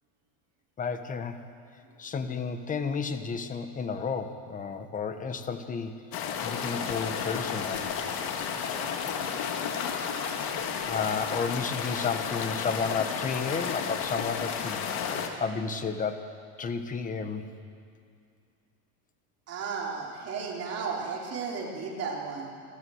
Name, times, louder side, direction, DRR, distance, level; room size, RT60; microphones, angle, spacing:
voice 1, 0.8-1.4 2.0-7.9 10.9-14.9 15.4-16.3 16.6-17.4, left 5 dB, 15° left, 9 dB, 1.0 m, -32 dB
sound 1, 6.1-15.3, left 7 dB, 50° left, 2.0 m, -32 dB
voice 2, 19.5-22.5, right 5 dB, 30° right, -2 dB, 3.6 m, -34 dB
26.5 x 13.0 x 7.9 m, 2.4 s
cardioid pair, 160°, 47 cm